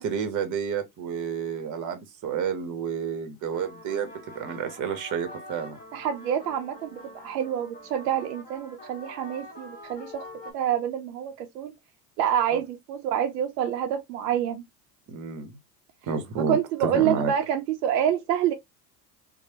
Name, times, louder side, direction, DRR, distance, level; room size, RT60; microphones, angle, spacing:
voice 1, 0.0-5.8 12.5-12.6 15.1-15.6 16.0-17.3, right 6 dB, 40° right, 0.9 m, -30 dB
sound 1, 3.4-10.5, left 1 dB, 15° left, 1.2 m, -45 dB
voice 2, 5.9-10.2 10.5-11.7 12.2-14.7 16.5-18.5, right 9 dB, 75° right, 0.6 m, -27 dB
3.0 x 2.1 x 2.7 m
hypercardioid pair, 75°, 49 cm